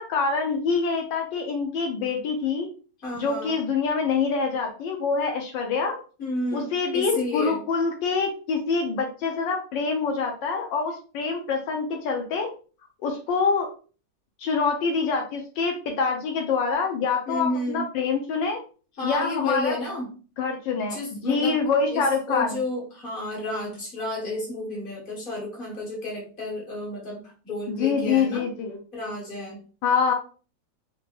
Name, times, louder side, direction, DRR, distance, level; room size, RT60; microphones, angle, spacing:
voice 1, 0.0-2.7 3.2-6.0 6.5-12.5 13.0-13.7 14.4-18.6 19.0-19.8 20.4-22.6 27.7-28.8 29.8-30.1, left 5 dB, 80° left, 2 dB, 1.4 m, -25 dB
voice 2, 3.0-3.5 6.2-6.7 6.9-7.6 17.3-17.9 19.0-20.1 20.8-21.6 21.9-28.5 28.9-29.6, left 2 dB, 30° left, -4 dB, 1.6 m, -31 dB
4.5 x 2.9 x 2.5 m, 0.38 s
omnidirectional pair, 2.0 m